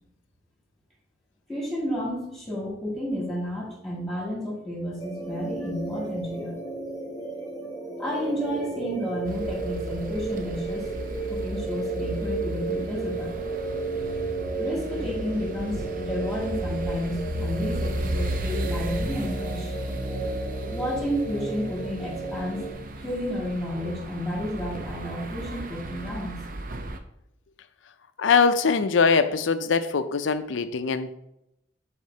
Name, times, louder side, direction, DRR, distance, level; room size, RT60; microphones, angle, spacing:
voice 1, 1.5-6.6 8.0-10.8 11.3-13.4 14.6-19.7 20.7-22.6 23.0-26.4, equal, ahead, -5 dB, 2.2 m, -31 dB
sound 1, 5.0-22.7, right 3 dB, 15° left, 1.4 m, -33 dB
sound 2, 9.2-27.0, right 1 dB, 45° right, 0.6 m, -34 dB
voice 2, 28.2-31.2, left 5 dB, 75° left, 11 dB, 0.5 m, -22 dB
10.5 x 4.3 x 2.8 m, 0.84 s
head